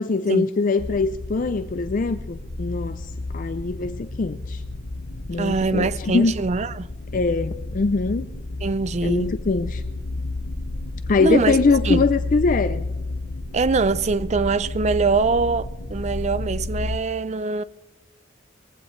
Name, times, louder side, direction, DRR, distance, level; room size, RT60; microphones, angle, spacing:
voice 1, 0.0-4.6 5.3-6.4 7.1-8.3 9.0-9.8 11.1-12.9, left 4 dB, 40° left, 0.4 m, -22 dB
sound 1, 0.8-17.0, left 2 dB, 65° left, 1.0 m, -31 dB
voice 2, 5.4-6.9 8.6-9.3 11.2-11.6 11.8-12.1 13.5-17.6, right 4 dB, 35° right, 0.4 m, -23 dB
21.5 x 15.5 x 3.2 m
head